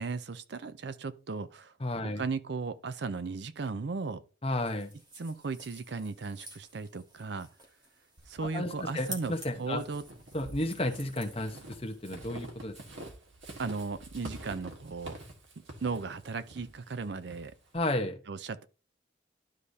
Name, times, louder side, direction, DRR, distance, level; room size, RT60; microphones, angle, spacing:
voice 1, 0.0-1.7 2.2-4.2 5.2-7.5 8.3-9.3 9.6-10.0 13.6-15.2 15.8-17.5 18.3-18.7, right 4 dB, 65° right, 0.5 m, -36 dB
voice 2, 1.8-2.2 4.4-4.9 8.5-9.8 10.3-12.7 17.7-18.2, left 1 dB, 30° left, 0.9 m, -32 dB
sound 1, 4.7-12.2, equal, 20° right, 1.5 m, -50 dB
Walk footsteps / Squeak, 8.2-17.8, right 1 dB, 80° right, 1.6 m, -48 dB
12.0 x 4.8 x 2.7 m
head